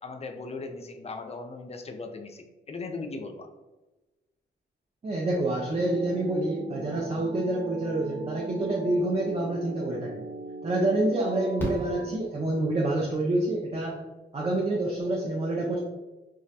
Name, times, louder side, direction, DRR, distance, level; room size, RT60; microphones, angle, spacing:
voice 1, 0.0-3.5, left 3 dB, 30° left, 5 dB, 0.4 m, -38 dB
voice 2, 5.0-10.2 10.6-14.0 14.3-15.8, right 2 dB, 30° right, -1 dB, 0.4 m, -27 dB
sound 1, 5.7-12.1, right 3 dB, 75° right, 0.7 m, -39 dB
Fireworks, 11.6-12.9 14.7-14.8 15.0-15.1, left 1 dB, 10° left, 0.9 m, -36 dB
2.3 x 2.0 x 2.7 m, 1.1 s
supercardioid pair, 45°, 21 cm